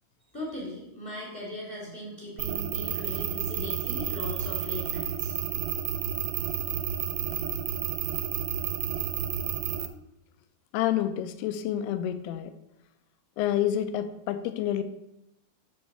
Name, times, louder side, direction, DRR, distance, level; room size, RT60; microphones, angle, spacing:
voice 1, 0.3-5.3, left 1 dB, 5° left, -5 dB, 2.3 m, -39 dB
sound 1, 2.4-9.9, right 10 dB, 80° right, 2.6 m, -31 dB
voice 2, 10.7-12.5 13.4-14.8, left 11 dB, 85° left, 10 dB, 2.5 m, -28 dB
7.3 x 7.2 x 4.4 m, 0.87 s
omnidirectional pair, 4.8 m